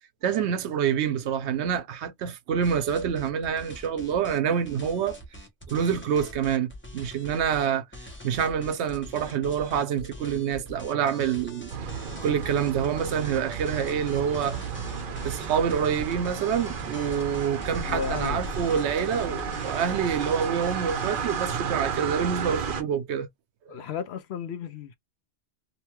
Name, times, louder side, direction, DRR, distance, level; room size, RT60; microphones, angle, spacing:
voice 1, 0.2-5.2 5.7-7.8 8.2-11.7 12.2-14.6 14.9-23.3 23.7-23.8, right 8 dB, 85° right, 0.9 m, -27 dB
sound 1, 2.6-7.7 7.9-21.7, left 1 dB, 10° left, 0.7 m, -44 dB
sound 2, 11.7-22.8, right 6 dB, 60° right, 0.7 m, -33 dB
voice 2, 17.9-18.5 19.1-20.0 22.7-22.9 23.7-24.9, left 7 dB, 75° left, 0.9 m, -35 dB
2.8 x 2.2 x 2.9 m
omnidirectional pair, 1.1 m